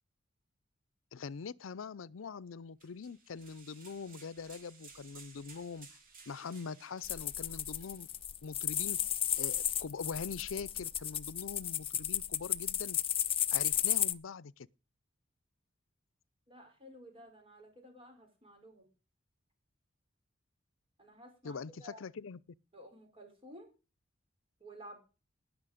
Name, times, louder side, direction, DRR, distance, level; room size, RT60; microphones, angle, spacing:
voice 1, 1.1-5.9 6.3-8.1 8.4-9.0 9.4-13.0 13.5-14.7 21.4-22.4, left 5 dB, 90° left, 0.5 m, -43 dB
sound 1, 2.8-8.2, right 4 dB, 45° right, 3.1 m, -57 dB
sound 2, 7.0-14.1, left 10 dB, 30° left, 0.6 m, -33 dB
voice 2, 16.5-18.9 21.0-22.0 22.7-23.7 24.6-25.0, right 1 dB, 30° right, 4.9 m, -53 dB
18.5 x 6.3 x 5.1 m
head